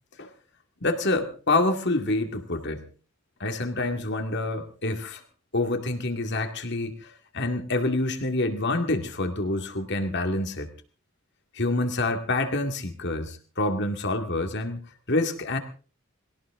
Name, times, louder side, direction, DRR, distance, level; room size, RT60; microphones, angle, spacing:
voice 1, 0.8-2.9 3.4-5.2 5.5-10.7 11.5-14.8 15.1-15.6, left 2 dB, 55° left, 6 dB, 2.2 m, -27 dB
22.0 x 17.5 x 3.7 m, 0.38 s
head